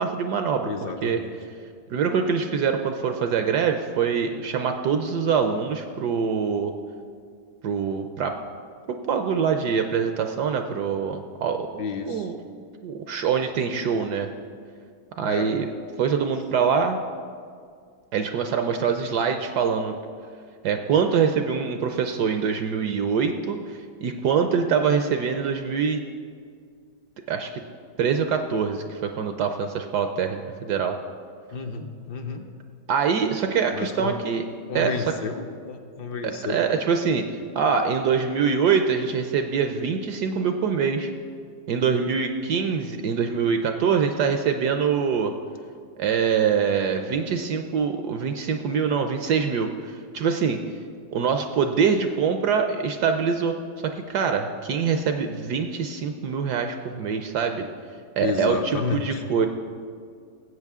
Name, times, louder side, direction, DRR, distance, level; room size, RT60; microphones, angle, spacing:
voice 1, 0.0-0.7 1.0-1.2 1.9-6.7 7.6-8.4 8.9-12.4 12.8-14.3 15.2-15.7 16.0-17.0 18.1-19.9 20.6-26.0 27.3-27.6 28.0-31.0 32.9-34.4 34.7-35.0 36.2-37.2 37.5-41.1 41.7-45.3 46.0-50.6 51.1-57.7 58.2-59.5, right 6 dB, 70° right, 6 dB, 1.0 m, -24 dB
voice 2, 0.6-1.3 11.8-12.3 15.3-15.5 31.5-32.5 33.7-34.2 34.7-36.6 58.2-59.2, left 5 dB, 65° left, 4 dB, 1.3 m, -31 dB
17.5 x 7.9 x 3.6 m, 2.2 s
omnidirectional pair, 2.1 m